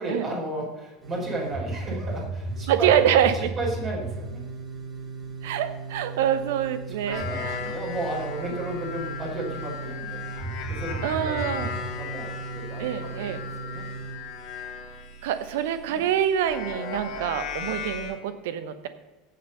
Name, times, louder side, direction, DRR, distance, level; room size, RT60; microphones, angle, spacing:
voice 1, 0.0-2.9 3.2-4.4 7.0-10.2 10.7-13.8 15.9-16.1, right 2 dB, 35° right, -3 dB, 5.0 m, -34 dB
sound 1, 1.0-14.2, right 3 dB, 15° right, 3.9 m, -35 dB
voice 2, 2.7-3.5 5.4-7.7 11.0-11.8 12.8-13.4 15.2-18.9, right 10 dB, 60° right, 11 dB, 1.0 m, -25 dB
sound 2, 7.1-18.1, left 6 dB, 50° left, 2.8 m, -37 dB
16.0 x 6.7 x 5.5 m, 1.1 s
figure-of-eight pair, 75°, 0 cm